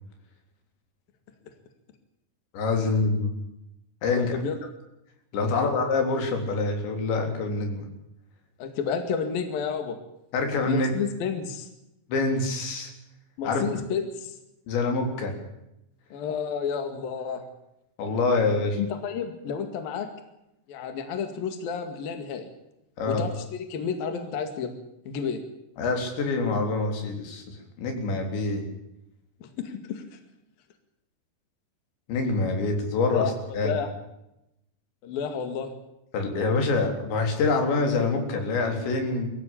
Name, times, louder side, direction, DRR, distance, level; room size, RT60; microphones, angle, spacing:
voice 1, 2.5-3.4 4.0-4.4 5.3-7.9 10.3-10.9 12.1-12.9 13.4-13.6 14.7-15.3 18.0-18.8 23.0-23.3 25.8-28.6 32.1-33.7 36.1-39.3, left 3 dB, 90° left, 4 dB, 5.9 m, -26 dB
voice 2, 4.2-4.6 5.4-5.7 8.6-10.0 10.7-11.7 13.4-14.3 16.1-17.5 18.8-20.1 20.7-22.5 23.1-24.8 25.1-25.4 29.4-30.2 33.1-33.9 35.0-35.7, left 6 dB, 60° left, 7 dB, 3.7 m, -31 dB
23.5 x 15.5 x 8.6 m, 0.85 s
omnidirectional pair, 5.0 m